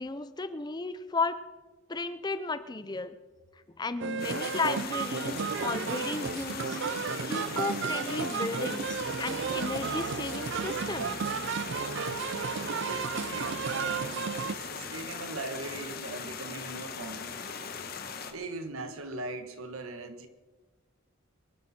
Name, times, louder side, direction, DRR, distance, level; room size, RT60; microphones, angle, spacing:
voice 1, 0.0-1.4 1.9-3.2 3.8-7.0 7.3-11.3, left 3 dB, 20° left, 12 dB, 0.5 m, -34 dB
sound 1, 4.0-14.6, right 6 dB, 55° right, 0.4 m, -33 dB
sound 2, 4.2-18.3, left 5 dB, 45° left, 1.3 m, -40 dB
sound 3, 4.7-16.6, left 1 dB, 85° left, 2.7 m, -54 dB
voice 2, 12.8-17.3 18.3-20.3, right 2 dB, 75° right, 8 dB, 1.4 m, -40 dB
23.5 x 12.0 x 4.3 m, 1.3 s
head